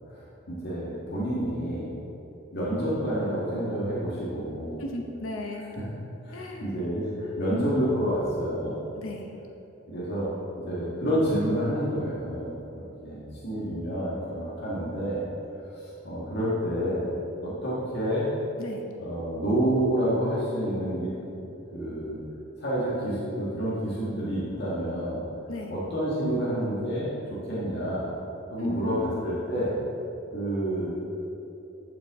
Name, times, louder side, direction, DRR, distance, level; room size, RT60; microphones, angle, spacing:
voice 1, 0.5-1.9 2.5-4.8 6.2-8.8 9.9-10.3 10.7-15.2 15.8-17.1 17.4-18.3 19.0-21.3 21.7-22.2 22.6-25.2 25.7-27.1 27.5-28.1 28.5-29.7 30.3-30.9, equal, 55° left, -8 dB, 1.7 m, -29 dB
voice 2, 4.8-5.6 6.3-6.7 9.0-9.3 18.6-18.8 25.5-25.8 28.6-29.3, left 1 dB, 85° left, 2 dB, 0.9 m, -35 dB
11.0 x 5.9 x 3.6 m, 2.9 s
head